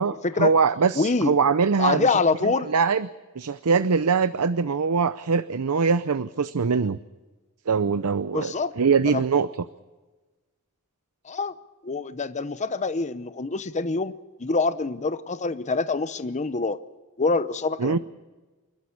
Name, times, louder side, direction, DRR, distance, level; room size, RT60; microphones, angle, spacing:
voice 1, 0.0-2.2 2.4-3.1 3.4-7.0 7.7-9.5 17.8-18.0, right 5 dB, 80° right, 13 dB, 0.6 m, -23 dB
voice 2, 1.0-1.3 1.8-2.7 8.3-8.7 9.0-9.2 11.2-11.6 11.8-14.1 14.4-16.8 17.2-18.0, left 3 dB, 30° left, 12 dB, 0.8 m, -25 dB
28.0 x 12.5 x 8.5 m, 1.2 s
head